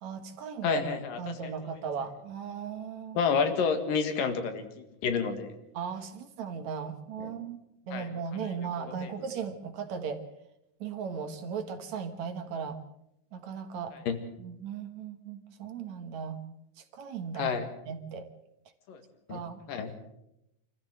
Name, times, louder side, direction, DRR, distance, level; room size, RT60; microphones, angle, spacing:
voice 1, 0.0-0.8 1.2-3.3 5.7-10.2 10.8-12.8 13.3-14.0 14.4-16.4 16.8-17.6 17.9-18.3 19.3-19.6, right 6 dB, 60° right, 7 dB, 2.5 m, -37 dB
voice 2, 0.6-1.7 3.1-5.5 7.9-8.1 8.8-9.1 14.1-14.2 17.4-17.7 18.9-19.0 19.3-19.4 19.7-19.9, left 6 dB, 80° left, 7 dB, 3.5 m, -30 dB
25.5 x 14.5 x 7.7 m, 0.83 s
omnidirectional pair, 3.9 m